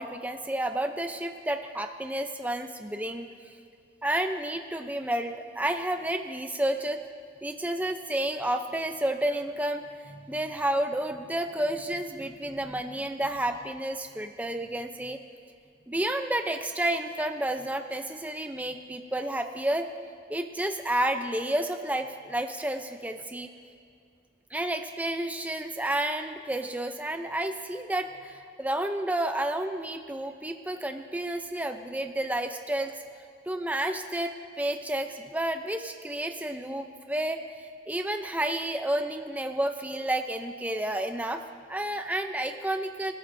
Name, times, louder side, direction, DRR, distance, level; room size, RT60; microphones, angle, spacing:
voice 1, 0.0-3.3 4.0-7.0 7.4-15.2 15.9-19.9 20.3-23.5 24.5-32.9 33.5-41.4 41.7-43.1, right 1 dB, 10° right, 6 dB, 0.6 m, -30 dB
28.5 x 12.5 x 2.7 m, 2.3 s
head